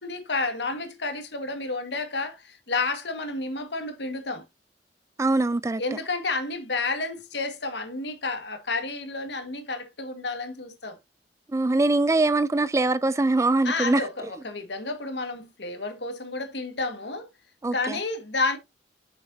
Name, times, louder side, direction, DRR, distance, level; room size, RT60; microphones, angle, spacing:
voice 1, 0.0-4.4 5.8-11.0 13.6-17.3 17.7-18.6, left 3 dB, 75° left, 1.8 m, -30 dB
voice 2, 5.2-6.0 11.5-14.3 17.6-18.0, right 2 dB, 15° right, 0.4 m, -23 dB
8.5 x 6.5 x 2.7 m
head